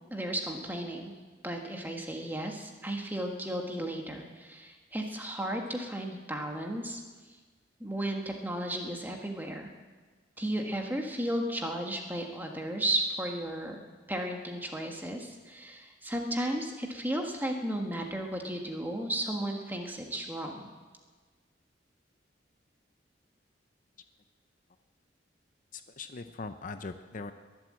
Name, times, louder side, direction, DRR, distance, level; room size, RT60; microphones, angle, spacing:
voice 1, 0.1-1.1 1.4-7.0 7.8-9.7 10.4-13.8 14.1-20.7, right 1 dB, 10° right, 2 dB, 1.5 m, -34 dB
voice 2, 25.7-27.3, left 3 dB, 45° left, 9 dB, 0.6 m, -40 dB
21.5 x 7.8 x 7.7 m, 1.4 s
head